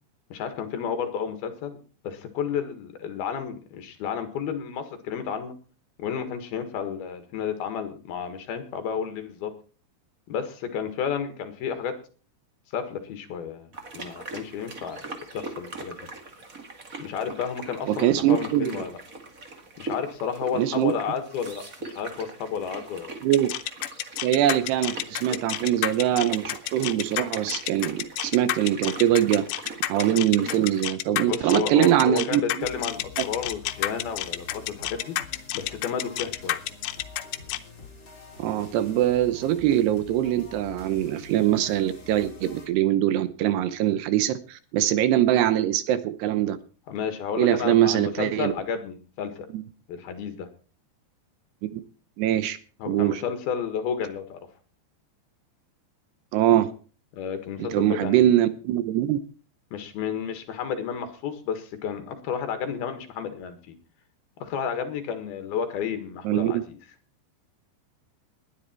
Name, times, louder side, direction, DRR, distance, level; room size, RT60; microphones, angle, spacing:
voice 1, 0.3-1.8 2.0-5.6 6.0-9.5 10.3-11.9 12.7-15.1 15.3-16.0 17.0-19.0 19.8-23.1 31.3-35.2 35.5-36.6 46.9-49.5 49.9-50.5 52.8-54.4 57.1-58.2 59.7-63.8 64.4-66.8, left 7 dB, 65° left, 8 dB, 3.4 m, -31 dB
sound 1, 13.7-30.8, right 2 dB, 40° right, 1.1 m, -41 dB
voice 2, 17.9-18.7 20.6-20.9 23.2-23.5 24.2-29.5 29.9-32.7 38.4-46.6 47.4-48.5 49.5-49.6 51.7-51.8 52.2-52.6 52.9-53.2 56.3-56.7 57.6-59.2 66.2-66.6, right 12 dB, 75° right, 13 dB, 2.8 m, -23 dB
sound 2, 23.3-37.6, left 15 dB, 80° left, 3.0 m, -30 dB
sound 3, 32.6-42.7, left 4 dB, 30° left, 4.5 m, -46 dB
19.5 x 10.5 x 4.4 m, 0.39 s
omnidirectional pair, 5.0 m